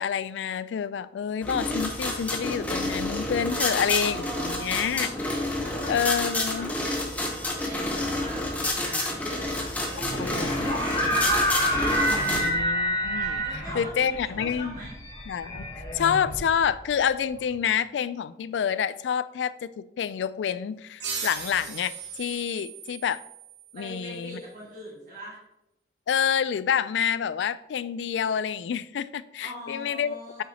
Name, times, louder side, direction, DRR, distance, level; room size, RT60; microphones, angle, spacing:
voice 1, 0.0-5.1 5.9-6.7 10.2-10.7 12.3-13.4 13.7-14.8 15.3-15.7 15.9-23.2 23.7-24.4 26.1-30.4, left 8 dB, 90° left, 0.3 m, -28 dB
sound 1, 1.4-12.5, left 1 dB, 10° left, 0.9 m, -29 dB
voice 2, 3.5-5.1 5.6-6.2 6.5-12.6 13.4-15.0 23.7-25.4 29.4-30.4, right 1 dB, 45° right, 1.7 m, -42 dB
sound 2, 10.0-16.8, equal, 25° left, 2.2 m, -28 dB
sound 3, 21.0-24.2, right 6 dB, 80° right, 1.4 m, -38 dB
8.2 x 6.1 x 2.8 m
head